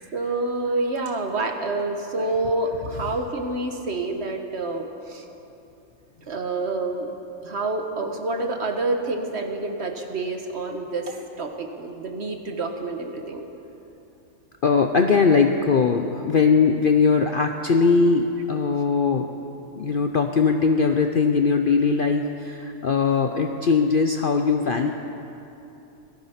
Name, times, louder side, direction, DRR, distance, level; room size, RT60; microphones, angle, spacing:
voice 1, 0.1-5.2 6.3-7.2 7.4-13.4, right 2 dB, 50° right, 4 dB, 1.4 m, -28 dB
voice 2, 14.6-19.3 19.7-24.9, left 5 dB, 55° left, 5 dB, 0.6 m, -20 dB
18.0 x 13.5 x 5.7 m, 2.9 s
omnidirectional pair, 1.5 m